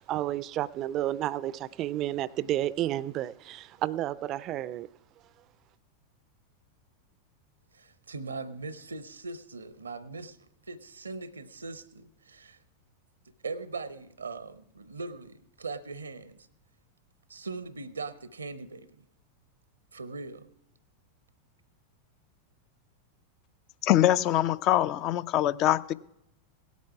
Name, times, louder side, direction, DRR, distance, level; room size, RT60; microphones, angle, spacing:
voice 1, 0.0-4.9, right 13 dB, 35° right, 0.4 m, -31 dB
voice 2, 7.7-12.6 13.4-16.5 17.3-19.1 19.9-20.5, right 3 dB, 75° right, 0.7 m, -40 dB
voice 3, 23.8-25.9, left 13 dB, 40° left, 0.4 m, -24 dB
17.5 x 8.3 x 4.7 m
figure-of-eight pair, 90°, 0 cm